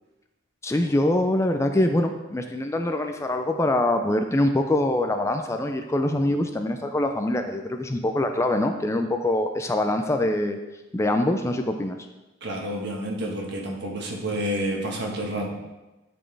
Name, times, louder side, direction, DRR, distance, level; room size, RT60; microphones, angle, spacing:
voice 1, 0.6-10.6 10.9-12.0, left 1 dB, 15° left, 6 dB, 0.3 m, -24 dB
voice 2, 12.4-15.5, equal, 60° right, 0 dB, 1.3 m, -29 dB
10.5 x 4.3 x 3.3 m, 1.1 s
head